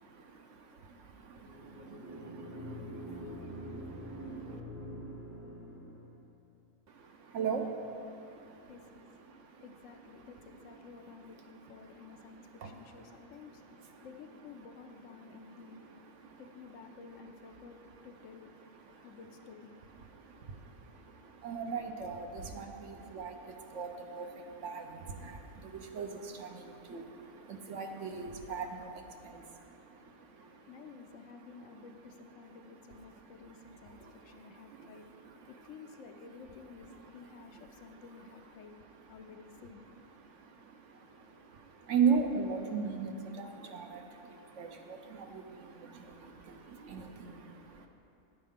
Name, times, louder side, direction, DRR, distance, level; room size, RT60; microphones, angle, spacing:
voice 1, 0.0-4.6 6.9-9.7 10.1-14.1 15.2-16.4 17.6-18.1 18.4-19.2 20.0-31.0 31.3-31.9 32.5-36.0 36.8-38.2 38.6-47.9, right 6 dB, 65° right, 4 dB, 1.0 m, -40 dB
sound 1, 1.3-6.3, right 1 dB, 15° right, 0.5 m, -45 dB
voice 2, 8.7-9.0 9.6-13.6 14.0-15.8 16.4-17.8 18.0-18.5 19.0-19.8 30.7-35.1 35.5-38.7 39.1-39.9, left 5 dB, 70° left, 6 dB, 0.9 m, -52 dB
11.0 x 9.2 x 3.7 m, 2.6 s
omnidirectional pair, 1.5 m